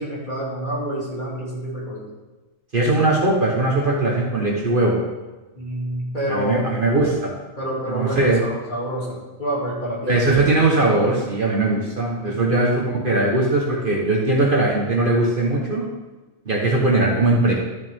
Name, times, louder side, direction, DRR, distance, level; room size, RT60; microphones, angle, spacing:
voice 1, 0.0-2.1 5.5-6.7 7.6-10.2 12.2-12.4, right 1 dB, 35° left, -7 dB, 3.0 m, -28 dB
voice 2, 2.7-5.0 6.3-7.3 7.9-8.4 10.1-15.9 16.5-17.5, right 2 dB, 40° right, -2 dB, 1.3 m, -20 dB
13.0 x 5.7 x 3.6 m, 1.2 s
omnidirectional pair, 1.4 m